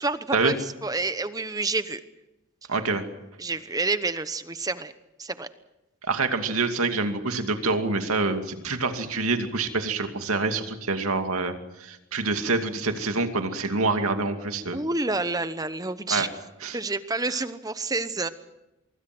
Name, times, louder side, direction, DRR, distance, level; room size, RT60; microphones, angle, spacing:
voice 1, 0.0-2.0 3.4-4.9 5.2-5.5 14.7-16.3 16.7-18.3, right 3 dB, 15° right, 12 dB, 0.9 m, -28 dB
voice 2, 2.7-3.0 6.1-14.8 16.1-16.3 16.6-16.8, right 3 dB, 85° right, 6 dB, 2.5 m, -26 dB
24.5 x 23.5 x 6.2 m, 0.95 s
head